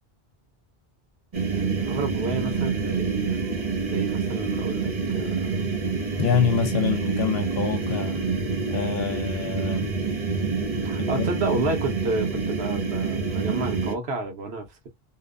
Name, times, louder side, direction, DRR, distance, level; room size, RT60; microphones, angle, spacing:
sound 1, 1.3-14.0, right 4 dB, 40° right, 0.6 m, -27 dB
voice 1, 1.5-5.7 10.8-14.9, right 3 dB, 85° right, 1.1 m, -31 dB
voice 2, 6.2-8.2 8.7-9.9 11.0-11.3, left 8 dB, 70° left, 0.8 m, -26 dB
2.7 x 2.1 x 2.3 m
omnidirectional pair, 1.0 m